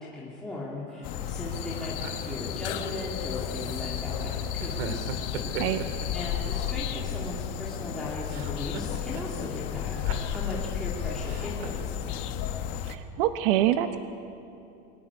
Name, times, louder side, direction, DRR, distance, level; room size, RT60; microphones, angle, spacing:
voice 1, 0.0-5.1 5.7-5.8 6.1-12.3, left 2 dB, ahead, -8 dB, 2.3 m, -38 dB
sound 1, 0.9-3.0 3.8-4.1 4.6-6.7 7.0-8.0 8.3-9.5 9.8-10.9 11.2-12.0, right 5 dB, 85° right, 2.6 m, -40 dB
sound 2, 1.0-12.9, left 9 dB, 40° left, 1.2 m, -33 dB
sound 3, 1.5-6.7, left 11 dB, 65° left, 3.0 m, -41 dB
voice 2, 12.8-14.0, right 12 dB, 65° right, 9 dB, 1.1 m, -25 dB
23.0 x 13.5 x 9.7 m, 2.8 s
supercardioid pair, 175°, 30 cm